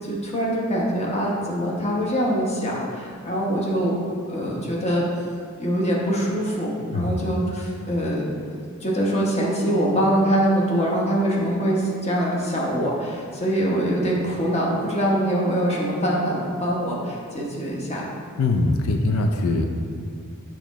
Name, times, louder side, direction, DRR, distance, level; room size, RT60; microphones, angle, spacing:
voice 1, 0.1-4.0 4.3-5.0 5.6-8.2 8.8-18.1, equal, 30° left, -3 dB, 1.0 m, -23 dB
voice 2, 18.4-19.7, left 2 dB, 70° left, 3 dB, 0.5 m, -22 dB
6.8 x 3.0 x 4.6 m, 2.1 s
head